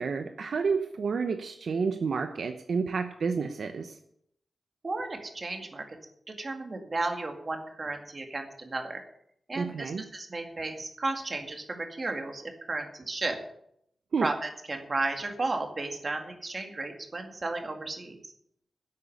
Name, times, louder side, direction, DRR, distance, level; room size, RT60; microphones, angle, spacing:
voice 1, 0.0-3.9 9.6-10.0 14.1-14.3, right 5 dB, 65° right, 7 dB, 0.8 m, -30 dB
voice 2, 4.8-6.0 6.4-9.0 9.5-13.4 14.2-18.3, right 2 dB, 35° right, 4 dB, 2.1 m, -34 dB
11.0 x 8.2 x 8.0 m, 0.73 s
wide cardioid pair, 150°, 0 cm